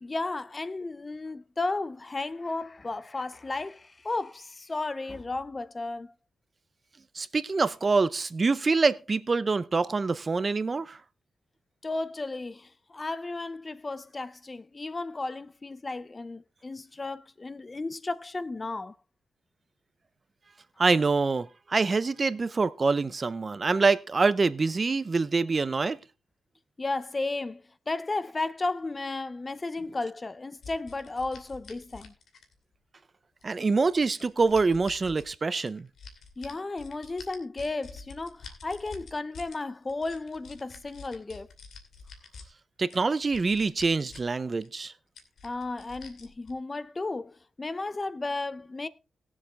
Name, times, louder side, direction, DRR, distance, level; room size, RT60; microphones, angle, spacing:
voice 1, 0.0-6.1 11.8-19.0 26.8-32.1 36.4-41.5 45.4-48.9, left 3 dB, 25° left, 0.5 m, -34 dB
voice 2, 7.1-11.0 20.8-26.0 33.4-35.9 42.8-44.9, right 4 dB, 30° right, 0.6 m, -25 dB
sound 1, 30.6-32.7 33.4-35.3 35.6-39.6 39.9-42.4 42.9-44.4 44.6-44.7 45.2-46.5, left 4 dB, 70° left, 2.5 m, -47 dB
19.0 x 7.3 x 3.3 m
wide cardioid pair, 120°, 0 cm